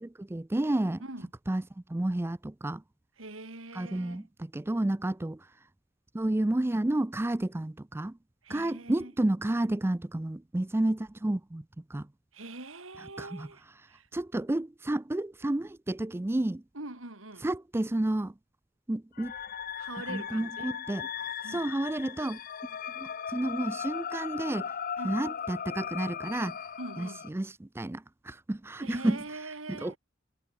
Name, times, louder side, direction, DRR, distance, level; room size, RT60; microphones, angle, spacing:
voice 1, 0.0-1.0 1.5-1.6 1.9-2.8 3.7-5.4 6.1-8.2 8.5-11.6 11.9-12.1 13.2-13.5 14.1-16.6 17.4-18.3 18.9-19.3 20.1-21.1 21.5-22.4 23.0-24.7 25.0-26.6 27.0-29.2 29.8-30.0, right 1 dB, 10° right, 0.4 m, -31 dB
voice 2, 3.2-4.3 8.4-9.1 12.3-13.6 13.9-14.1 16.7-17.5 19.8-20.8 21.4-21.7 25.0-25.2 26.8-27.2 28.8-30.0, right 2 dB, 80° right, 4.3 m, -43 dB
sound 1, 19.2-27.3, left 8 dB, 45° left, 0.6 m, -38 dB
head